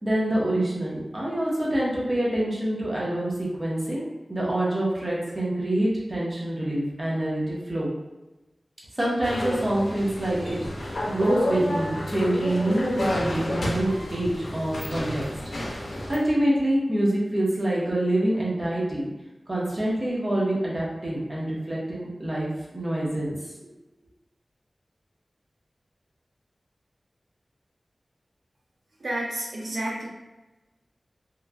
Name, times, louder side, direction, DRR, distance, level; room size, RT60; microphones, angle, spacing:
voice 1, 0.0-7.9 9.0-15.2 16.1-19.0 19.5-22.5 22.7-23.3, right 1 dB, 35° right, -5 dB, 0.9 m, -26 dB
sound 1, 9.2-16.2, left 1 dB, 80° left, 0.5 m, -30 dB
voice 2, 29.0-30.1, right 1 dB, 75° right, -3 dB, 0.6 m, -30 dB
2.9 x 2.4 x 2.2 m, 1.1 s
wide cardioid pair, 75°, 0 cm